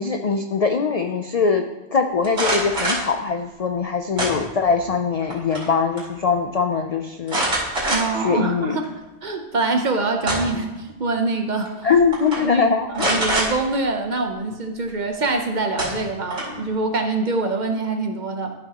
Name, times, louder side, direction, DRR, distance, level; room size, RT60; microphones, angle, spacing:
voice 1, 0.0-1.7 1.9-7.5 8.2-8.8 11.8-13.2, left 5 dB, 75° left, 5 dB, 0.3 m, -22 dB
sound 1, 2.2-3.1 4.2-4.8 5.2-5.7 6.0-6.1 7.3-8.3 8.8-8.9 9.9-10.7 11.7-11.8 12.1-12.4 12.9-13.5 15.2-15.3 15.8-16.6, right 1 dB, 90° right, 3.0 m, -24 dB
voice 2, 7.9-8.8 9.2-11.9 12.4-18.5, right 3 dB, 45° right, 4 dB, 0.8 m, -24 dB
13.5 x 5.7 x 2.9 m, 1.0 s
omnidirectional pair, 1.3 m